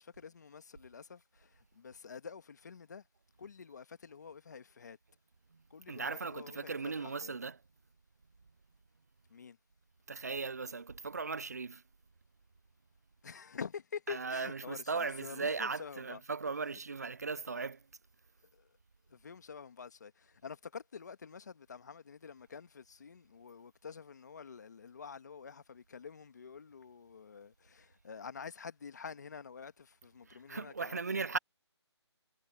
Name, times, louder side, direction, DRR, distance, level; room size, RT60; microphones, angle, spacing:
voice 1, 0.0-3.0 3.4-5.0 5.7-7.3 9.3-9.6 13.2-16.2 18.5-18.7 19.1-31.1, left 6 dB, 40° left, 1.7 m, -48 dB
voice 2, 5.9-7.6 10.1-11.8 14.1-17.8 30.3-31.4, right 4 dB, 35° right, 0.3 m, -37 dB
hypercardioid pair, 175°, 15 cm